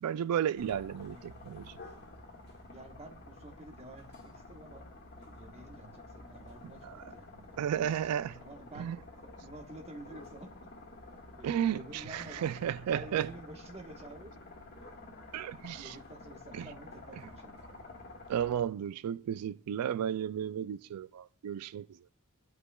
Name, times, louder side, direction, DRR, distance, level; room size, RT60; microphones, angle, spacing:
voice 1, 0.0-1.7 6.8-7.0 7.6-8.4 8.8-9.0 11.4-13.3 15.3-15.9 16.5-16.7 18.3-21.9, right 9 dB, 90° right, 0.3 m, -33 dB
sound 1, 0.6-18.6, left 2 dB, 50° left, 1.7 m, -50 dB
voice 2, 0.9-1.6 2.7-4.9 5.1-10.5 11.4-12.5 12.9-14.3 14.7-15.0 15.5-17.6, right 1 dB, 30° right, 1.2 m, -50 dB
21.5 x 8.2 x 2.3 m
head